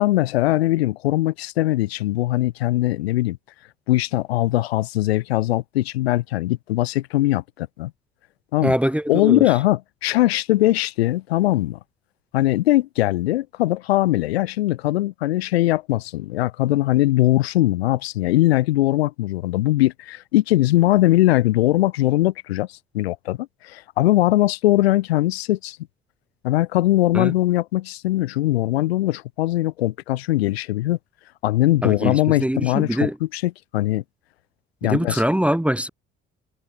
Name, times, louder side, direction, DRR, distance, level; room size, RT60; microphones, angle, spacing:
voice 1, 0.0-3.4 3.9-7.9 8.5-8.7 9.1-11.8 12.3-22.7 22.9-25.8 26.4-31.0 31.4-34.0 34.8-35.2, left 16 dB, 85° left, 0.8 m, -20 dB
voice 2, 8.6-9.4 27.1-27.3 31.8-33.2 34.8-35.9, equal, 5° right, 0.6 m, -23 dB
hypercardioid pair, 50°, 31 cm